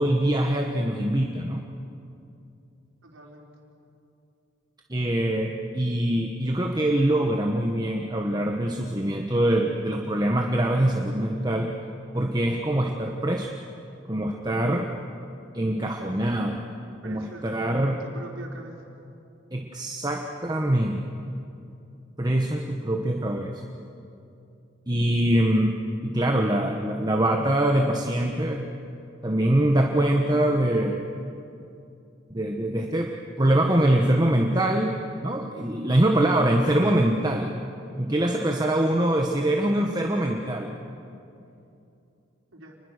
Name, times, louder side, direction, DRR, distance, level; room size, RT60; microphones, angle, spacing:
voice 1, 0.0-1.6 4.9-11.7 12.1-13.5 14.1-14.9 15.5-16.6 17.0-18.0 19.5-21.0 22.2-23.6 24.9-25.7 26.0-28.7 29.2-31.0 32.3-33.1 33.4-37.5 38.0-40.8, right 1 dB, 20° right, 2 dB, 1.1 m, -24 dB
voice 2, 3.0-3.5 17.0-17.6 17.9-18.8 42.5-42.8, right 2 dB, 80° right, 0 dB, 4.1 m, -43 dB
28.0 x 21.0 x 6.6 m, 2.7 s
head